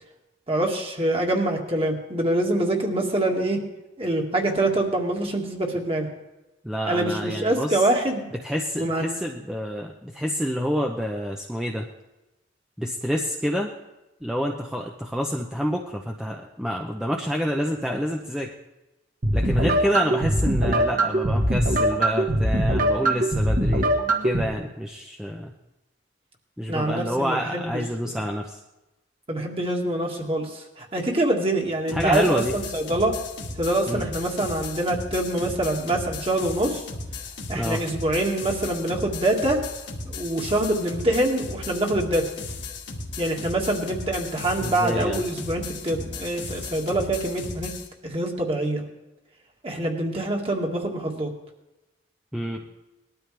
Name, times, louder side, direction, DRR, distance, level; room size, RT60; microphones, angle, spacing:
voice 1, 0.5-3.6 4.0-6.1 6.9-8.2 8.7-9.2 26.7-28.3 29.3-33.1 33.6-36.8 37.5-39.6 40.1-42.3 43.2-47.7 48.0-48.8 49.6-51.3, right 1 dB, 30° right, 1 dB, 2.0 m, -25 dB
voice 2, 6.6-7.9 8.4-11.9 12.8-13.7 14.2-18.5 19.3-23.9 24.2-25.5 26.6-28.6 31.9-32.5 33.9-34.0 37.5-37.8 44.6-45.2 52.3-52.6, equal, 5° right, 0 dB, 0.7 m, -28 dB
sound 1, 19.2-24.4, right 1 dB, 45° right, 1.6 m, -22 dB
sound 2, 31.9-47.9, left 3 dB, 65° left, 2.0 m, -36 dB
20.0 x 12.5 x 3.4 m, 0.98 s
head